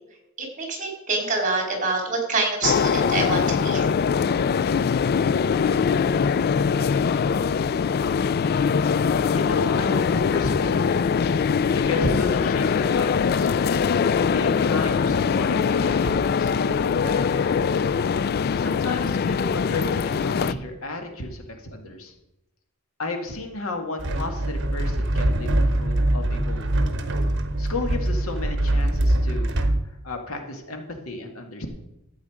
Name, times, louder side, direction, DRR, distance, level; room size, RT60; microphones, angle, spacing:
voice 1, 0.4-3.9, right 3 dB, 40° right, 1 dB, 3.0 m, -26 dB
sound 1, 2.6-20.5, left 6 dB, 50° left, 0.3 m, -22 dB
voice 2, 9.3-11.0 11.7-13.7 14.3-17.9 18.6-22.1 23.0-26.9 27.6-29.5 30.0-31.7, left 2 dB, 90° left, 4 dB, 2.0 m, -33 dB
sound 2, 24.0-29.8, right 1 dB, 60° right, 1.1 m, -23 dB
13.0 x 8.4 x 4.9 m, 0.90 s
head